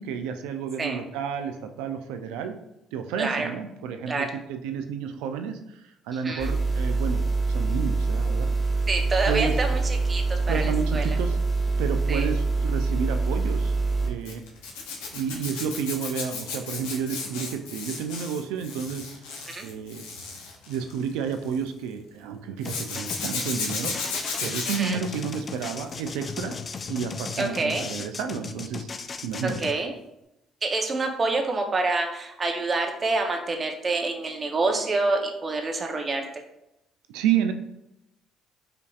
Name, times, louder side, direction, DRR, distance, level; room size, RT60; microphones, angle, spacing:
voice 1, 0.0-2.5 2.9-7.2 7.5-8.5 9.3-9.6 10.5-11.4 11.8-13.8 14.0-14.4 15.1-19.1 19.6-20.0 20.7-24.0 24.4-26.6 26.9-29.6 37.1-37.5, right 7 dB, 85° right, 7 dB, 0.4 m, -31 dB
voice 2, 3.2-3.5 4.1-4.3 6.2-6.5 8.9-11.2 12.1-12.3 19.5-19.7 24.7-25.0 27.4-27.9 29.4-29.9 30.6-36.2, right 3 dB, 40° right, 3 dB, 0.7 m, -27 dB
sound 1, 6.4-14.1, right 3 dB, 5° left, 1.2 m, -25 dB
Zipper (clothing), 14.2-21.7 22.6-26.3 26.6-27.0 29.3-29.5 29.7-29.8, left 4 dB, 90° left, 0.6 m, -35 dB
sound 2, 22.6-29.7, left 5 dB, 40° left, 0.3 m, -36 dB
5.0 x 2.8 x 2.3 m, 0.85 s
supercardioid pair, 65°, 0 cm